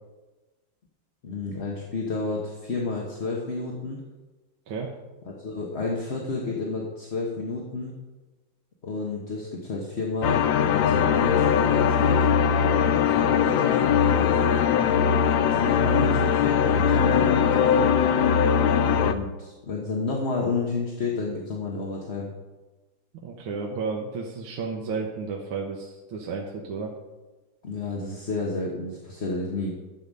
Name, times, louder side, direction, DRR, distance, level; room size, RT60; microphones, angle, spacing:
voice 1, 1.2-4.0 5.4-8.0 8.8-12.2 12.8-15.0 15.4-17.9 18.8-22.3 27.6-29.7, left 3 dB, 35° left, -2 dB, 1.3 m, -31 dB
sound 1, 10.2-19.1, left 7 dB, 75° left, 1.3 m, -21 dB
voice 2, 23.2-26.9, right 4 dB, 75° right, -1 dB, 1.9 m, -32 dB
12.0 x 7.9 x 5.3 m, 1.2 s
omnidirectional pair, 2.4 m